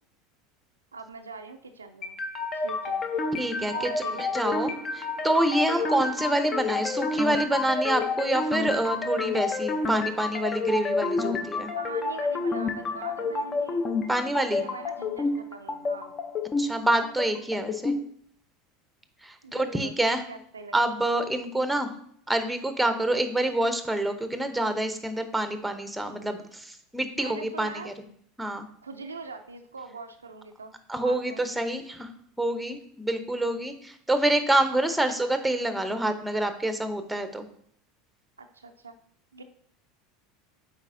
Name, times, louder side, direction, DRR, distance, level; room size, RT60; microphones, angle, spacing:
voice 1, 0.9-2.2 2.5-3.1 3.7-4.7 5.8-6.1 11.8-13.8 14.4-16.1 19.4-21.0 27.2-27.9 28.8-30.7 31.0-31.4 38.4-38.9 39.3-39.4, right 4 dB, 85° right, 6 dB, 0.4 m, -42 dB
sound 1, 2.0-18.0, left 3 dB, 30° left, 0.8 m, -29 dB
voice 2, 3.4-11.7 14.1-14.6 16.6-17.9 19.2-20.2 20.7-21.9 22.3-28.1 28.4-28.7 30.9-32.1 32.4-37.5, right 1 dB, 5° right, 8 dB, 0.8 m, -27 dB
8.1 x 4.8 x 2.7 m, 0.64 s
figure-of-eight pair, 80°, 0 cm